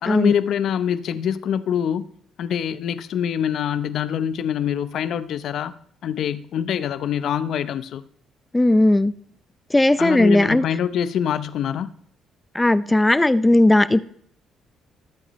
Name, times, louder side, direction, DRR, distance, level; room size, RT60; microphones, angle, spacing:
voice 1, 0.0-2.1 2.4-5.7 6.0-8.1 10.0-11.9, left 9 dB, 65° left, 14 dB, 0.6 m, -24 dB
voice 2, 8.5-9.1 9.7-10.6 12.5-14.0, left 1 dB, 10° left, 16 dB, 0.5 m, -17 dB
20.0 x 8.4 x 3.1 m, 0.66 s
cardioid pair, 85°, 0 cm